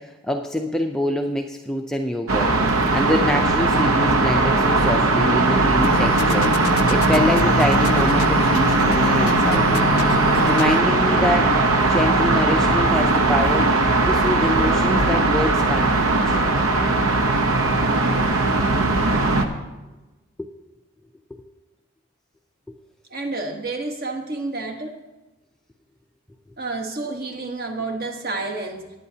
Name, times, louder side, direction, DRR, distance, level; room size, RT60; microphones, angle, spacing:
voice 1, 0.0-2.5 2.9-9.9 10.5-16.4 20.4-20.5 21.3-21.5, left 1 dB, 5° left, 3 dB, 0.4 m, -25 dB
sound 1, 2.3-19.5, right 2 dB, 80° right, 0.9 m, -19 dB
sound 2, 5.8-10.8, left 8 dB, 80° left, 0.3 m, -29 dB
voice 2, 23.1-25.0 26.6-28.9, right 3 dB, 45° right, 4 dB, 1.1 m, -29 dB
19.0 x 9.0 x 2.8 m, 1.1 s
head